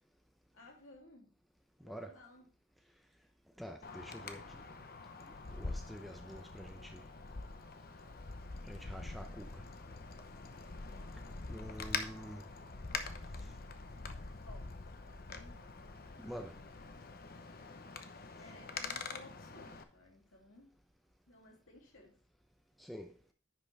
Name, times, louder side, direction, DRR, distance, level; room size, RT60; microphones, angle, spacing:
voice 1, 0.5-1.3 1.8-2.5 14.4-14.8 15.1-16.0 18.4-20.8 21.3-22.2, left 2 dB, 75° left, 2.9 m, -58 dB
voice 2, 1.8-2.1 3.6-4.6 5.5-7.0 8.6-9.6 11.5-12.5 13.4-13.5 16.2-16.6 22.8-23.1, equal, ahead, 0.6 m, -47 dB
Wind, 3.8-19.8, left 4 dB, 45° left, 0.8 m, -45 dB
10.0 x 5.9 x 3.4 m
head